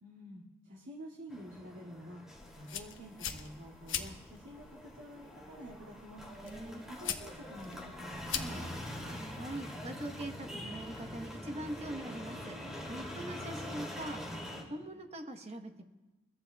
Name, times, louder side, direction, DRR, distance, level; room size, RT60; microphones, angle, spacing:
voice 1, 0.0-2.2 2.5-6.2 6.9-9.2, equal, 90° right, -6 dB, 2.3 m, -49 dB
sound 1, 1.3-14.6, equal, 5° right, 2.7 m, -44 dB
sound 2, 2.3-9.1, left 8 dB, 70° left, 1.1 m, -43 dB
voice 2, 6.4-6.8 9.3-14.4 14.7-15.8, right 1 dB, 30° right, 4 dB, 1.1 m, -43 dB
29.5 x 14.5 x 2.3 m, 1.1 s
head